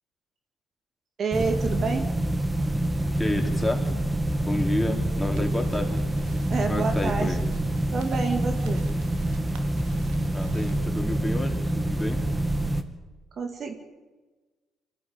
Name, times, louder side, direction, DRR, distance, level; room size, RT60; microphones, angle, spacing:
voice 1, 1.2-2.1 6.5-7.4 7.9-8.9 13.3-13.7, right 4 dB, 50° right, 5 dB, 2.3 m, -28 dB
sound 1, 1.3-12.8, right 1 dB, 15° right, 2.1 m, -26 dB
voice 2, 3.2-4.0 4.4-6.0 6.3-6.4 6.7-7.4 10.3-12.2, left 1 dB, 5° left, 2 dB, 4.3 m, -30 dB
sound 2, 5.3-10.8, right 7 dB, 85° right, 2.5 m, -45 dB
24.0 x 15.0 x 8.9 m, 1.3 s
supercardioid pair, 75°, 0 cm